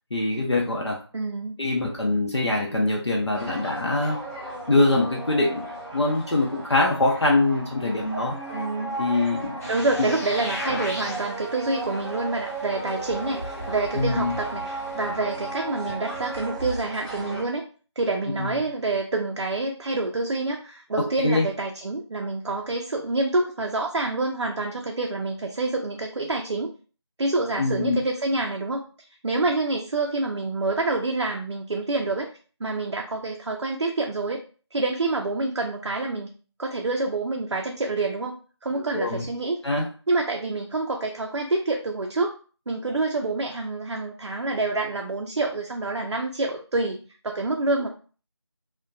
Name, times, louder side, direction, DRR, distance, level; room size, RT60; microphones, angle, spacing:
voice 1, 0.1-1.0 1.6-4.2 4.7-5.6 5.9-8.3 9.0-9.6 10.0-10.1 13.9-14.4 18.4-18.6 21.2-21.5 27.6-28.0 38.7-39.2 39.6-39.9, left 2 dB, 70° left, -1 dB, 0.6 m, -23 dB
voice 2, 1.1-1.6 8.5-9.1 9.7-17.7 18.0-26.7 27.2-28.8 29.2-32.3 32.6-34.4 34.7-36.3 36.6-39.6 40.1-42.4 42.7-47.9, right 2 dB, 75° right, 1 dB, 0.4 m, -27 dB
sound 1, 3.3-17.4, right 2 dB, 15° right, 0.7 m, -35 dB
sound 2, 9.6-15.1, left 1 dB, 35° left, 0.6 m, -38 dB
2.6 x 2.1 x 2.2 m, 0.38 s
figure-of-eight pair, 175°, 15 cm